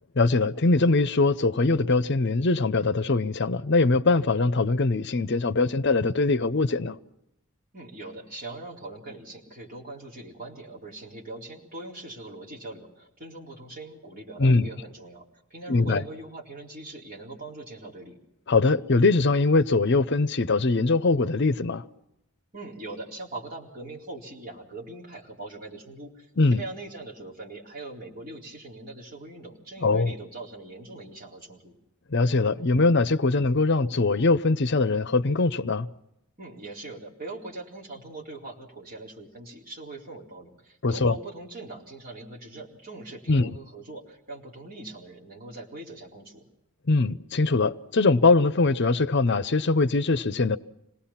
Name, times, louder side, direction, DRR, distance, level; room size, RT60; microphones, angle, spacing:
voice 1, 0.2-7.0 14.4-14.7 15.7-16.0 18.5-21.8 26.4-26.6 29.8-30.1 32.1-35.9 40.8-41.2 43.3-43.5 46.9-50.6, left 3 dB, 50° left, 0.7 m, -22 dB
voice 2, 7.7-15.2 15.5-18.2 22.5-31.7 36.4-46.5, right 2 dB, 40° right, 4.1 m, -41 dB
26.5 x 19.0 x 5.8 m
head